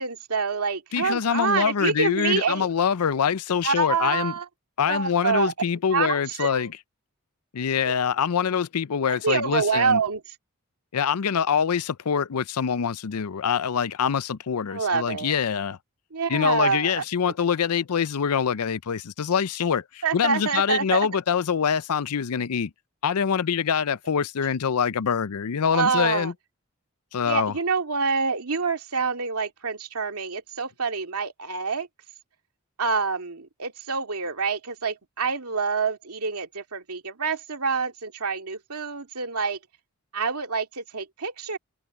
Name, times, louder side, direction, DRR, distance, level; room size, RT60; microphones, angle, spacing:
voice 1, 0.0-2.7 3.6-4.4 4.9-5.5 5.9-6.7 7.9-8.0 9.1-10.2 14.7-15.4 16.1-17.3 20.0-21.1 25.7-26.3 27.3-31.9 32.8-39.6 40.1-41.6, right 5 dB, 85° right, 2.4 m, -26 dB
voice 2, 0.9-4.3 4.8-6.7 7.5-10.0 10.9-15.8 16.3-22.7 23.0-26.3 27.1-27.5, left 7 dB, 85° left, 0.5 m, -25 dB
head